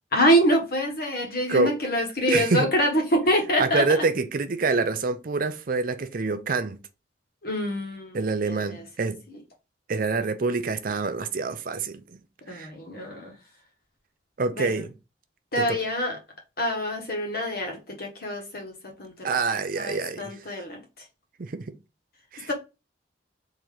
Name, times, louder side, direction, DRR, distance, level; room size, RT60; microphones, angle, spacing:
voice 1, 0.1-4.0 7.4-8.2 8.4-8.8 9.3-9.4 12.5-13.3 14.5-14.8 15.5-16.2 16.6-19.4 19.8-20.8 22.5-22.6, equal, 55° left, 1.4 m, -26 dB
voice 2, 2.3-2.7 3.6-6.8 8.1-9.2 9.9-12.2 12.5-12.7 14.4-14.9 15.6-15.8 19.2-20.4 21.4-21.8 22.3-22.5, right 4 dB, 50° right, 0.5 m, -26 dB
3.8 x 2.9 x 4.8 m
head